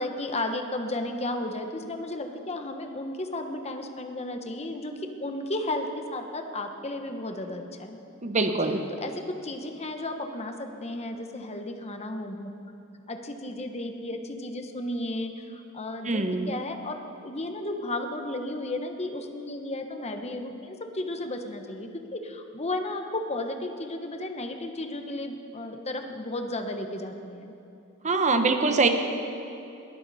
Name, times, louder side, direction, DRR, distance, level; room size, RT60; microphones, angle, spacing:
voice 1, 0.0-4.9 5.2-8.0 9.0-12.7 13.1-27.5, left 1 dB, 30° left, 5 dB, 1.1 m, -34 dB
voice 2, 8.2-8.8 16.0-16.5 28.0-28.9, right 3 dB, 35° right, 6 dB, 1.1 m, -23 dB
22.0 x 15.0 x 4.2 m, 2.7 s
head